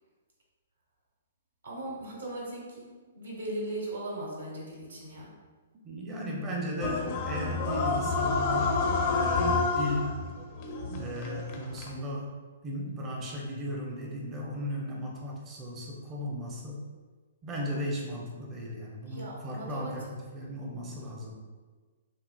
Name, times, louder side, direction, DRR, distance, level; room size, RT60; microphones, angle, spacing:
voice 1, 1.6-2.9 3.1-5.3 19.1-20.0, right 1 dB, 70° right, -3 dB, 1.2 m, -38 dB
voice 2, 5.8-10.2 10.9-12.3 12.6-16.8 17.4-21.4, equal, 20° right, -2 dB, 0.6 m, -36 dB
sound 1, 6.8-11.9, left 3 dB, 35° left, 0.5 m, -29 dB
6.3 x 2.4 x 2.3 m, 1.4 s
figure-of-eight pair, 115°, 0 cm